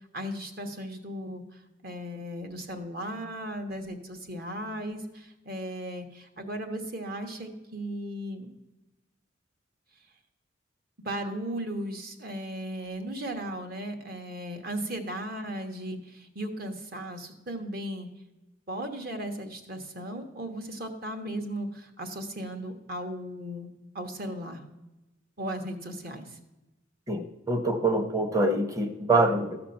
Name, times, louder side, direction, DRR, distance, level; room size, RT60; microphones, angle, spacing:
voice 1, 0.1-1.4 1.8-8.5 11.0-18.1 18.7-23.7 23.9-24.6 25.4-26.3, right 1 dB, 50° right, 5 dB, 1.3 m, -36 dB
voice 2, 27.5-29.6, right 2 dB, 15° right, 7 dB, 0.9 m, -25 dB
14.0 x 6.0 x 5.7 m, 1.0 s
head